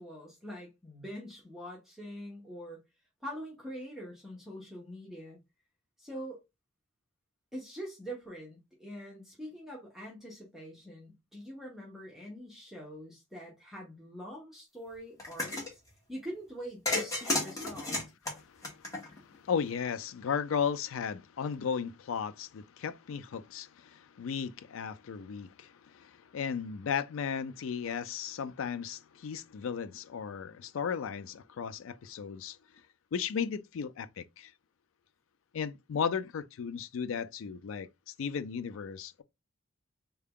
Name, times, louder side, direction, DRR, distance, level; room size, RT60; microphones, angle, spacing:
voice 1, 0.0-2.8 3.2-5.4 6.0-6.4 7.5-15.8 16.1-18.0, equal, ahead, 0.9 m, -44 dB
sound 1, 15.2-15.7 16.9-19.4, left 2 dB, 15° left, 1.2 m, -33 dB
voice 2, 18.3-32.6 33.1-34.5 35.5-39.2, left 6 dB, 65° left, 0.4 m, -35 dB
3.6 x 2.3 x 3.5 m
head